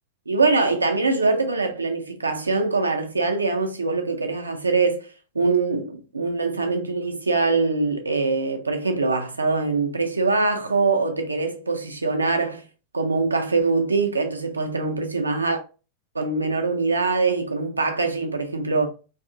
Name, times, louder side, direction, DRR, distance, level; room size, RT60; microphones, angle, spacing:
voice 1, 0.3-5.1 5.3-12.6 12.9-15.6 16.1-18.9, right 3 dB, 80° right, 0.5 m, -23 dB
2.7 x 2.4 x 2.6 m
figure-of-eight pair, 90°, 0 cm